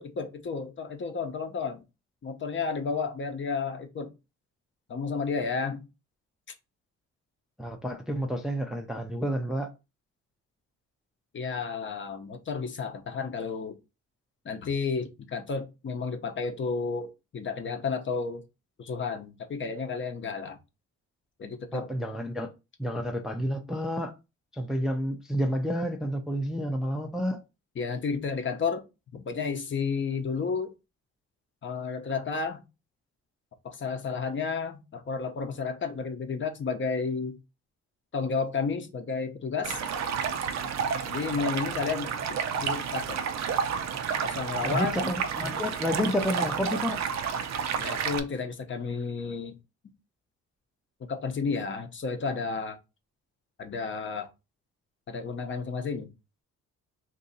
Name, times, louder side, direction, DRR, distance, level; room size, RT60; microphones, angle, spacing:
voice 1, 0.0-1.8 2.2-4.1 4.9-5.9 11.3-13.8 14.4-18.4 18.8-20.6 21.4-21.9 27.8-28.8 29.1-30.7 31.6-32.6 33.6-37.4 38.1-39.8 41.1-42.1 42.6-43.2 44.2-45.1 47.8-49.5 51.1-52.8 53.6-54.3 55.1-56.1, left 5 dB, 40° left, 0.7 m, -32 dB
voice 2, 7.6-9.7 21.7-22.5 22.8-24.1 24.5-27.4 44.6-47.0, equal, ahead, 0.5 m, -30 dB
Stream, 39.6-48.2, right 7 dB, 65° right, 0.6 m, -31 dB
2.8 x 2.7 x 4.0 m
cardioid pair, 90°, 30 cm